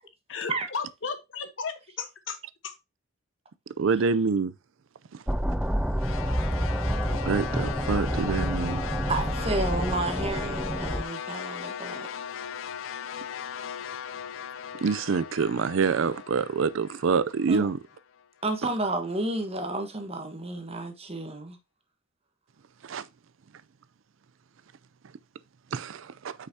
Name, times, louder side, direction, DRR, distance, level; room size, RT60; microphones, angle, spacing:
voice 1, 0.3-2.8, left 5 dB, 65° left, 1.1 m, -35 dB
voice 2, 3.8-4.5 5.1-5.2 7.3-8.8 14.8-17.8 22.8-23.1 25.7-26.3, right 5 dB, 70° right, 0.5 m, -26 dB
sound 1, 5.3-11.0, equal, 5° right, 0.4 m, -28 dB
sound 2, 6.0-18.2, left 8 dB, 80° left, 0.5 m, -38 dB
voice 3, 9.1-12.1 17.5-17.7 18.4-21.6, right 2 dB, 30° right, 1.3 m, -31 dB
8.0 x 5.8 x 2.7 m
head